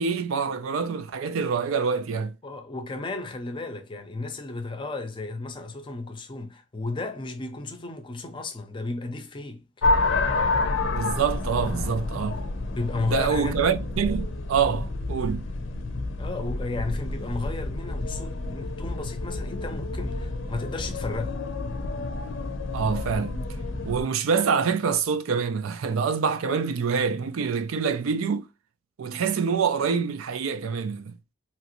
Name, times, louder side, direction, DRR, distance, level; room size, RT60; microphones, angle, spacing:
voice 1, 0.0-2.3 10.9-12.4 13.0-15.4 22.7-23.4 23.8-28.5 29.0-31.1, right 6 dB, 90° right, 0.4 m, -26 dB
voice 2, 2.4-9.6 12.8-13.7 16.2-21.4, left 3 dB, 25° left, 0.5 m, -33 dB
sound 1, 9.8-24.0, left 2 dB, 70° left, 0.5 m, -29 dB
3.0 x 2.4 x 3.0 m
head